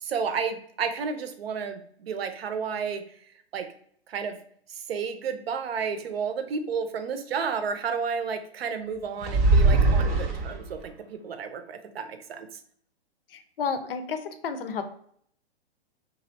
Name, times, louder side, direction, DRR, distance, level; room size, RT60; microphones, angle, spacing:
voice 1, 0.0-3.0 3.5-3.7 4.1-4.4 4.7-12.6, right 6 dB, 65° right, 7 dB, 0.7 m, -32 dB
sound 1, 9.2-10.9, right 3 dB, 15° right, 0.3 m, -21 dB
voice 2, 13.3-14.8, left 6 dB, 60° left, 9 dB, 0.6 m, -31 dB
2.9 x 2.7 x 4.0 m, 0.63 s
hypercardioid pair, 120°, 32 cm